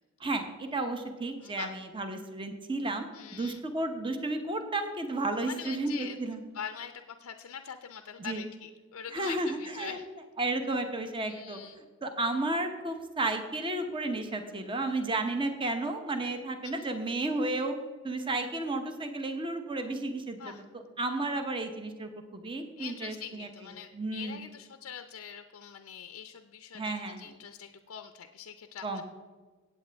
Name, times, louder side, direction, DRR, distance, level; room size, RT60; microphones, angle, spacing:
voice 1, 0.2-3.0 3.3-6.4 8.2-8.4 9.1-10.0 10.4-11.6 12.0-17.7 18.0-20.4 21.0-23.5 23.9-24.4 26.7-27.2 28.8-29.0, right 2 dB, 25° right, 7 dB, 0.8 m, -32 dB
voice 2, 1.4-1.8 3.1-3.6 5.4-6.2 6.5-10.1 11.2-11.8 16.6-16.9 20.4-20.6 22.8-29.0, left 8 dB, 85° left, 7 dB, 0.5 m, -44 dB
16.0 x 8.4 x 3.4 m, 1.4 s
head